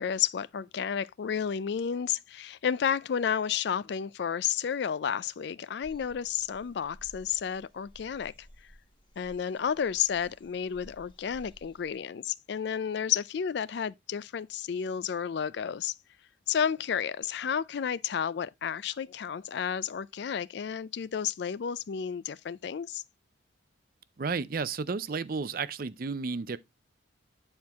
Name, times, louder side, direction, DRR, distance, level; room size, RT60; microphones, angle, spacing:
voice 1, 0.0-8.3 9.2-15.9 16.5-23.0, left 8 dB, 55° left, 0.3 m, -31 dB
sound 1, 5.8-12.0, equal, 25° left, 1.0 m, -55 dB
voice 2, 24.2-26.6, right 4 dB, 45° right, 0.5 m, -32 dB
9.4 x 4.4 x 3.4 m
head